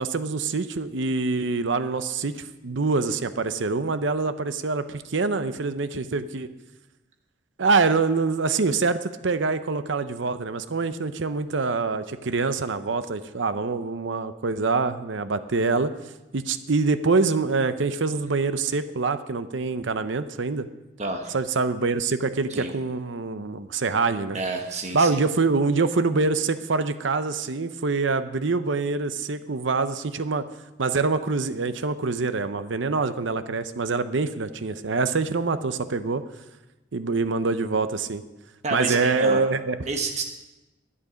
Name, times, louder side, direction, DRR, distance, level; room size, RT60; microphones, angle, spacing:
voice 1, 0.0-6.5 7.6-15.9 16.3-20.7 21.3-24.4 24.9-30.4 30.8-36.2 36.9-38.2 38.7-39.8, right 4 dB, 75° right, 11 dB, 0.7 m, -25 dB
voice 2, 21.0-21.3 22.5-22.7 24.3-25.2 38.6-39.5 39.9-40.2, right 3 dB, 35° right, 2 dB, 1.2 m, -29 dB
11.0 x 11.0 x 5.1 m, 1.0 s
head